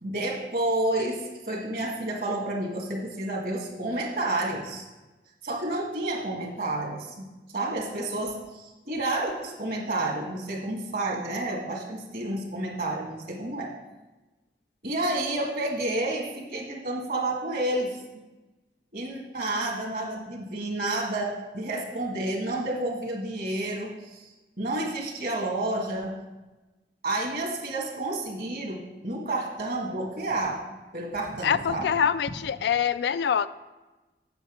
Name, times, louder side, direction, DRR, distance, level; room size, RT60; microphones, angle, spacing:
voice 1, 0.0-4.8 5.4-13.7 14.8-18.0 18.9-24.3 24.6-26.2 27.0-31.9, right 2 dB, 55° right, 0 dB, 1.7 m, -30 dB
voice 2, 31.4-33.5, left 8 dB, 70° left, 14 dB, 0.3 m, -25 dB
8.1 x 6.3 x 5.0 m, 1.1 s
head